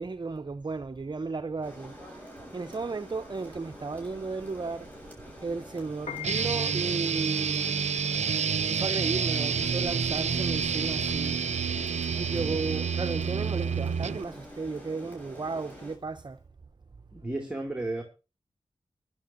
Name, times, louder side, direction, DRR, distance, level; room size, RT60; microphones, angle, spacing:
voice 1, 0.0-2.2 2.5-4.9 5.4-7.8 8.6-11.9 12.2-16.4, right 4 dB, 40° right, 0.7 m, -34 dB
Rain, 1.6-16.0, equal, 15° left, 7.3 m, -47 dB
Piano, 5.9-16.3, left 10 dB, 85° left, 1.4 m, -46 dB
sound 1, 6.2-14.2, right 6 dB, 80° right, 0.6 m, -28 dB
voice 2, 12.3-12.7 17.1-18.0, right 2 dB, 10° right, 2.4 m, -34 dB
23.0 x 11.0 x 2.7 m
cardioid pair, 55°, 11 cm